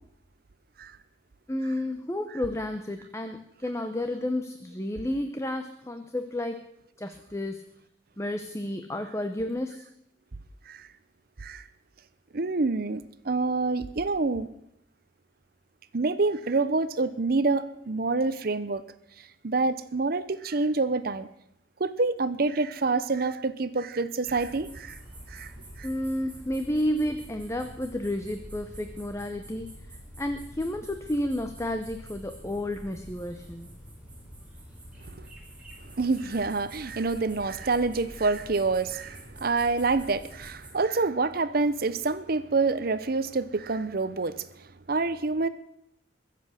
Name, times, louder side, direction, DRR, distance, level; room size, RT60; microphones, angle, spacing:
voice 1, 1.5-7.6 8.2-9.9 25.8-29.7 30.2-33.7, left 1 dB, 15° left, 0.8 m, -31 dB
voice 2, 12.3-14.5 15.9-18.8 19.4-21.3 21.8-25.0 25.3-25.5 25.8-25.9 35.0-35.3 36.0-44.4 44.9-45.5, right 3 dB, 50° right, 0.7 m, -27 dB
sound 1, 24.2-40.7, equal, 5° right, 4.3 m, -46 dB
22.5 x 7.7 x 6.4 m
head